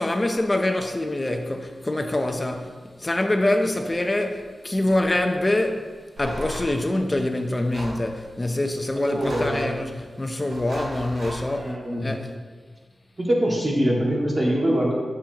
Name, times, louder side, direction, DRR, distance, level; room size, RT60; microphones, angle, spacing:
voice 1, 0.0-5.9 6.2-12.4, left 1 dB, 20° left, 0.7 m, -25 dB
sound 1, 6.2-6.7 7.7-8.0 9.1-9.6 10.4-11.4, right 1 dB, 75° right, 2.6 m, -35 dB
voice 2, 9.0-9.7 11.5-12.1 13.2-14.9, equal, 30° right, 2.1 m, -23 dB
11.5 x 7.2 x 3.0 m
wide cardioid pair, 120°, 0 cm